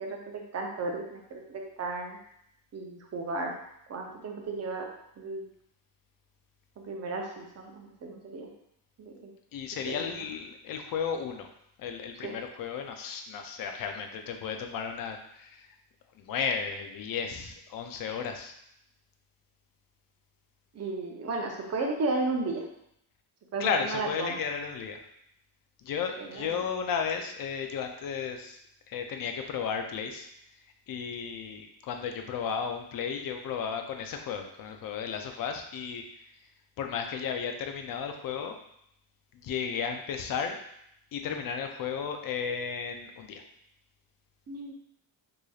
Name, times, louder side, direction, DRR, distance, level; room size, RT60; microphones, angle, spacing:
voice 1, 0.0-2.2 2.7-3.5 3.9-4.9 5.2-5.5 6.8-8.5 9.0-9.3 9.9-10.1 12.2-12.4 20.7-22.6 23.5-24.4 26.2-26.6 44.5-44.7, right 3 dB, 35° right, 1 dB, 0.6 m, -34 dB
voice 2, 9.5-11.5 11.8-15.7 16.2-18.5 23.6-25.0 25.8-28.6 28.9-30.3 30.9-36.0 36.8-38.6 39.3-40.6 41.1-43.4, left 6 dB, 50° left, 5 dB, 0.5 m, -34 dB
4.8 x 2.6 x 2.3 m, 0.75 s
cardioid pair, 145°, 45 cm